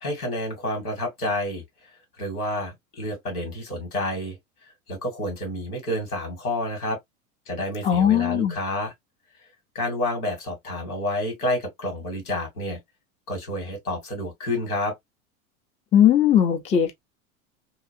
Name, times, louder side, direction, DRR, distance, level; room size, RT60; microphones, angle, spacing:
voice 1, 0.0-1.6 2.2-4.4 4.9-7.0 7.5-8.9 9.8-12.8 13.3-15.0, left 1 dB, 85° left, 1.9 m, -29 dB
voice 2, 7.8-8.6 15.9-16.9, left 9 dB, 15° left, 0.5 m, -18 dB
2.8 x 2.4 x 2.5 m
hypercardioid pair, 85°, 43 cm